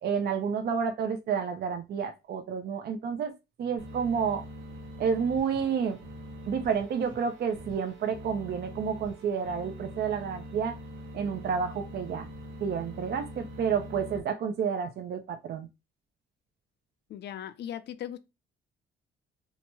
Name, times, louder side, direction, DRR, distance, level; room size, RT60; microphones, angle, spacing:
voice 1, 0.0-3.3 3.6-4.4 5.0-6.0 6.5-10.7 11.1-12.3 12.6-15.7, right 6 dB, 55° right, 0.5 m, -30 dB
sound 1, 3.8-14.2, equal, 90° right, 1.0 m, -44 dB
voice 2, 17.1-18.2, left 10 dB, 60° left, 0.4 m, -38 dB
2.9 x 2.2 x 2.9 m
cardioid pair, 90°, 20 cm